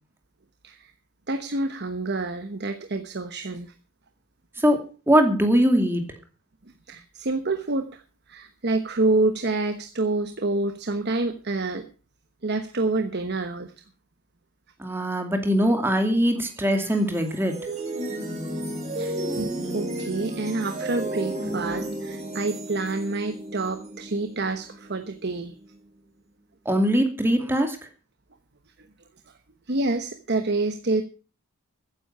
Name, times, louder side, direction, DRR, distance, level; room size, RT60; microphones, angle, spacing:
voice 1, 1.3-3.7 6.9-8.0 8.3-11.8 12.4-13.7 19.0-25.5 29.7-31.0, right 2 dB, 50° right, 8 dB, 1.1 m, -27 dB
voice 2, 4.6-6.0 14.8-17.5 26.7-27.8, equal, 10° right, 5 dB, 2.4 m, -21 dB
sound 1, 16.5-25.7, right 1 dB, 30° right, 4.8 m, -33 dB
15.0 x 9.9 x 5.6 m, 0.36 s
head